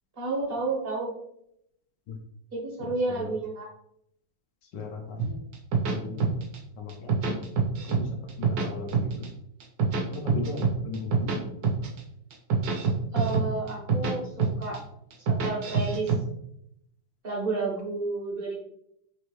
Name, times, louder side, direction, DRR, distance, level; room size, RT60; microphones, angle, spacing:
voice 1, 0.2-1.1 2.5-3.7 13.1-14.8 15.4-16.1 17.2-18.5, right 3 dB, 45° right, -2 dB, 0.8 m, -31 dB
voice 2, 2.8-3.2 4.7-5.4 5.9-6.3 6.8-7.4 7.8-9.3 10.1-11.5, left 4 dB, 70° left, 2 dB, 1.3 m, -37 dB
sound 1, 5.2-6.6 6.9-8.0 8.3-9.3 9.6-11.4 11.6-12.0 12.3-14.1 14.4-14.8 15.1-16.2, right 5 dB, 75° right, 1.5 m, -25 dB
4.2 x 3.4 x 3.1 m, 0.76 s
omnidirectional pair, 2.1 m